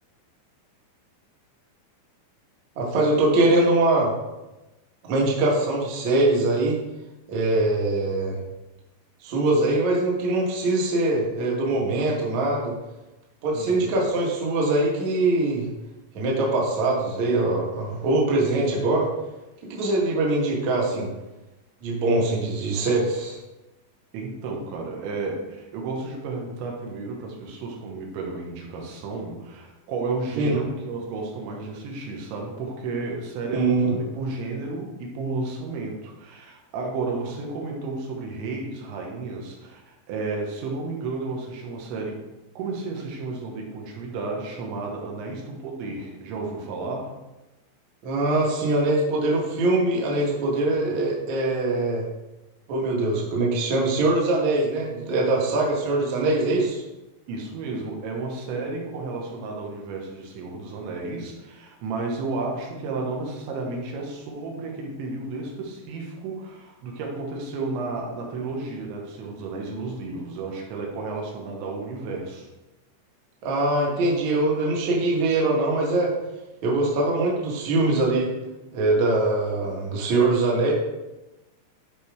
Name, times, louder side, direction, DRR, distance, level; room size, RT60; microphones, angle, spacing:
voice 1, 2.8-4.1 5.1-6.8 7.3-8.4 9.2-12.7 13.4-15.7 16.1-19.1 19.6-21.1 21.8-23.4 30.4-30.6 33.5-34.0 48.0-52.1 52.7-56.8 73.4-76.1 76.6-78.3 78.7-80.7, right 2 dB, 55° right, -3 dB, 2.1 m, -22 dB
voice 2, 13.5-13.9 22.1-22.3 24.1-42.2 42.6-47.2 57.3-72.5, right 3 dB, 85° right, 0 dB, 3.6 m, -32 dB
12.5 x 4.9 x 3.5 m, 1.0 s
omnidirectional pair, 5.2 m